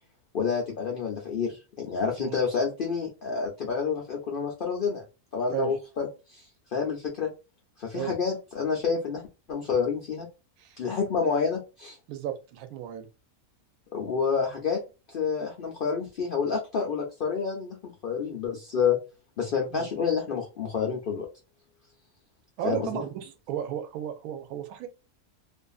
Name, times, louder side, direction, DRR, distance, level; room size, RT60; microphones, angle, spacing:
voice 1, 0.3-5.0 5.3-6.5 6.7-7.3 7.8-9.2 9.5-10.3 10.8-12.0 13.9-14.8 15.1-19.0 19.4-21.3 22.6-23.0, left 6 dB, 70° left, 0.5 m, -28 dB
voice 2, 12.1-13.1 19.7-19.9 22.6-24.9, right 10 dB, 80° right, 1.0 m, -34 dB
2.5 x 2.5 x 2.3 m
omnidirectional pair, 1.6 m